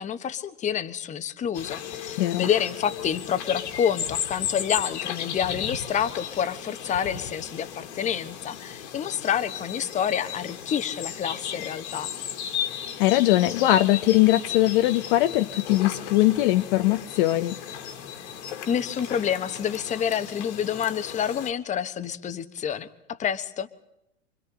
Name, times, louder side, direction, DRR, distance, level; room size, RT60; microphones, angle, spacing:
voice 1, 0.0-12.1 18.7-23.7, left 8 dB, 20° left, 10 dB, 1.1 m, -28 dB
sound 1, 1.5-21.5, left 9 dB, 70° left, 2.5 m, -35 dB
voice 2, 13.0-17.6, left 15 dB, 50° left, 8 dB, 0.9 m, -21 dB
27.5 x 25.5 x 3.9 m, 0.84 s
hypercardioid pair, 115°, 35 cm